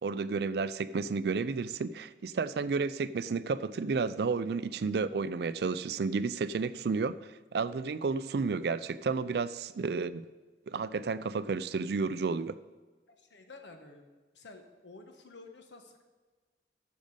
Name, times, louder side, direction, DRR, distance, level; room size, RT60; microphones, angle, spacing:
voice 1, 0.0-10.2 10.7-12.6, right 4 dB, 65° right, 15 dB, 0.4 m, -32 dB
voice 2, 13.1-14.0 14.3-16.0, left 3 dB, 85° left, 5 dB, 1.2 m, -51 dB
14.0 x 5.2 x 5.3 m, 1.3 s
head